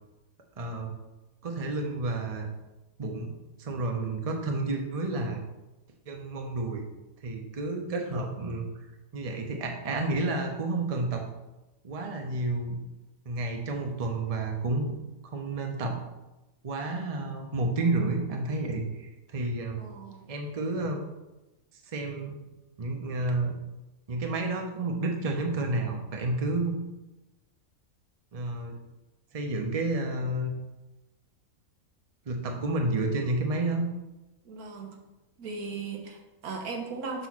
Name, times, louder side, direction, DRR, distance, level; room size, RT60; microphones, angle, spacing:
voice 1, 0.6-0.9 1.4-2.5 3.0-5.4 6.1-6.8 7.2-8.7 9.1-11.2 11.8-12.8 13.2-14.9 15.2-16.0 16.6-19.8 20.3-21.0 21.9-22.4 22.8-23.5 24.1-26.8 28.3-28.8 29.3-30.5 32.3-33.9, right 2 dB, 30° right, 2 dB, 0.8 m, -30 dB
voice 2, 19.8-20.3 34.4-35.0 35.4-37.3, right 4 dB, 85° right, 3 dB, 1.4 m, -37 dB
6.7 x 3.1 x 5.9 m, 1.0 s
omnidirectional pair, 1.5 m